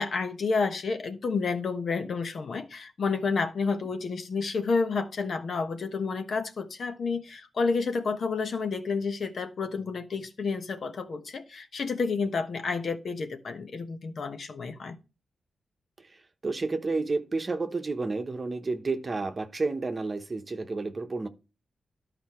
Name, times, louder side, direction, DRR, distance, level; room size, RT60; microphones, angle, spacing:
voice 1, 0.0-15.0, left 4 dB, 55° left, 1.1 m, -30 dB
voice 2, 16.0-21.3, right 3 dB, 30° right, 1.0 m, -31 dB
13.5 x 5.1 x 3.1 m
wide cardioid pair, 140°, 0 cm